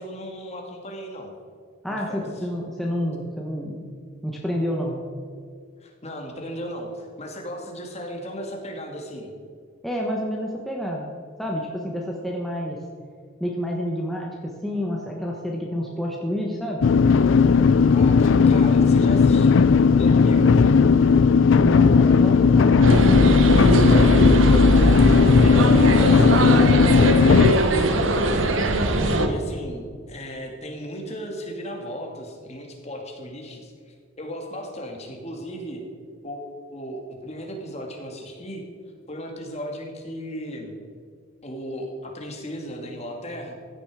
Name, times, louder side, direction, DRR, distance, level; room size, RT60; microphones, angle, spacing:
voice 1, 0.0-1.3 1.9-2.5 5.8-9.3 17.9-20.6 24.9-28.6 28.9-35.8 36.2-38.6 39.1-40.8 41.4-43.5, equal, 35° left, 1 dB, 2.2 m, -36 dB
voice 2, 1.8-3.9 4.2-5.0 9.8-11.1 11.4-12.8 13.4-16.8 21.6-23.9 29.0-29.3, equal, ahead, -2 dB, 1.2 m, -29 dB
sound 1, 16.8-27.5, left 5 dB, 75° left, 0.4 m, -16 dB
sound 2, 22.8-29.3, right 2 dB, 80° right, 1.2 m, -21 dB
15.5 x 10.0 x 4.9 m, 2.1 s
head